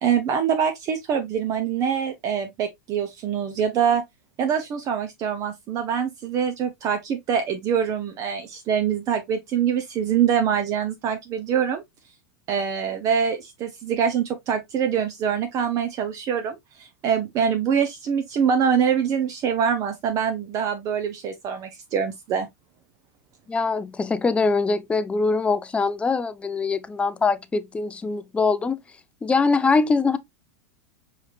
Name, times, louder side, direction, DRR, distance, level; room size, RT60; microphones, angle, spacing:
voice 1, 0.0-4.0 4.4-11.8 12.5-22.5, right 7 dB, 40° right, 0.7 m, -24 dB
voice 2, 23.5-28.8 29.2-30.2, left 4 dB, 10° left, 0.4 m, -23 dB
4.8 x 3.2 x 2.3 m
hypercardioid pair, 115°, 9 cm